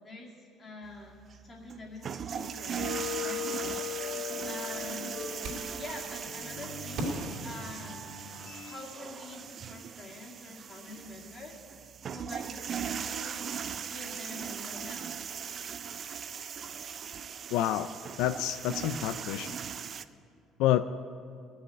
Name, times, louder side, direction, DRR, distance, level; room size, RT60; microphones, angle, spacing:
voice 1, 0.0-8.1 8.6-11.6 12.1-13.5 13.9-15.2, left 2 dB, 25° left, -2 dB, 2.2 m, -46 dB
sound 1, 0.9-20.0, right 7 dB, 35° right, 0.4 m, -39 dB
sound 2, 2.4-8.8, left 7 dB, 60° left, 2.3 m, -40 dB
sound 3, 5.4-5.9 7.0-8.5, right 1 dB, 60° right, 3.0 m, -38 dB
voice 2, 17.5-17.9 18.2-19.6 20.6-20.8, left 12 dB, 85° left, 11 dB, 0.4 m, -28 dB
19.0 x 6.4 x 8.4 m, 2.4 s
cardioid pair, 155°, 0 cm